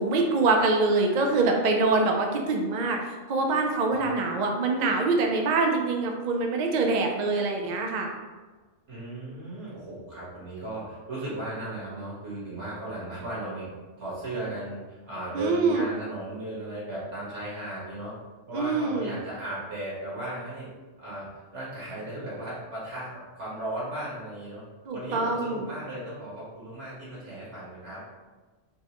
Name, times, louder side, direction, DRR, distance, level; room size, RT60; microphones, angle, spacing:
voice 1, 0.0-8.1 15.3-15.9 18.5-19.1 24.9-25.7, right 3 dB, 60° right, 2 dB, 0.5 m, -25 dB
voice 2, 8.9-13.7 14.0-18.1 18.5-20.7 21.0-24.6 24.9-28.0, right 1 dB, 80° right, -9 dB, 1.9 m, -36 dB
4.4 x 2.2 x 2.9 m, 1.3 s
omnidirectional pair, 1.2 m